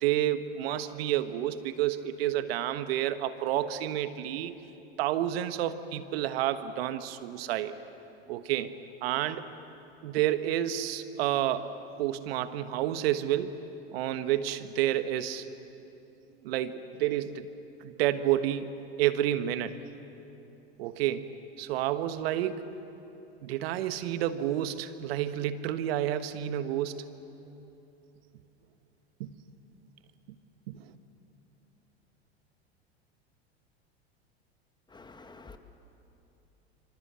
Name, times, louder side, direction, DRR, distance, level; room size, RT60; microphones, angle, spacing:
voice 1, 0.0-4.5 5.0-7.8 8.3-8.7 9.0-9.5 10.0-11.7 12.0-13.6 13.9-15.5 16.4-17.5 17.8-19.8 20.8-22.7 23.4-27.0 29.2-29.3 30.7-30.9, right 12 dB, 65° right, 11 dB, 1.5 m, -30 dB
voice 2, 34.9-35.6, left 3 dB, 15° left, 7 dB, 1.9 m, -49 dB
26.5 x 26.0 x 7.6 m, 2.9 s
hypercardioid pair, 90°, 32 cm